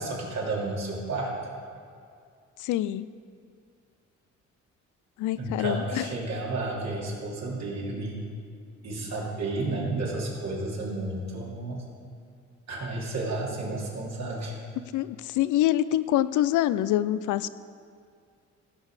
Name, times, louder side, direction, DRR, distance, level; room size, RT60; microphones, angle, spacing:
voice 1, 0.0-1.4 5.4-8.2 8.8-11.8 12.7-14.6, right 2 dB, 65° right, -4 dB, 2.8 m, -32 dB
voice 2, 2.6-3.0 5.2-6.0 14.9-17.5, left 13 dB, 80° left, 16 dB, 0.5 m, -25 dB
16.5 x 5.5 x 4.9 m, 2.3 s
cardioid pair, 90°, 30 cm